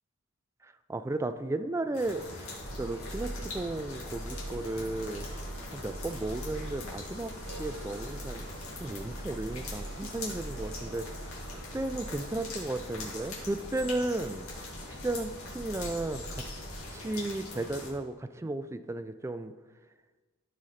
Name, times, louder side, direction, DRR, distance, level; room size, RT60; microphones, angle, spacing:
voice 1, 0.9-5.4 5.7-7.3 7.6-8.5 8.8-14.4 14.9-16.4 16.9-19.5, right 2 dB, 15° right, 10 dB, 0.3 m, -34 dB
sound 1, 1.9-17.9, left 2 dB, 90° left, 2.3 m, -42 dB
sound 2, 2.6-16.8, right 1 dB, 45° right, 1.8 m, -44 dB
Harp, 2.9-15.0, right 3 dB, 65° right, 0.9 m, -54 dB
13.0 x 4.9 x 4.3 m, 1.3 s
head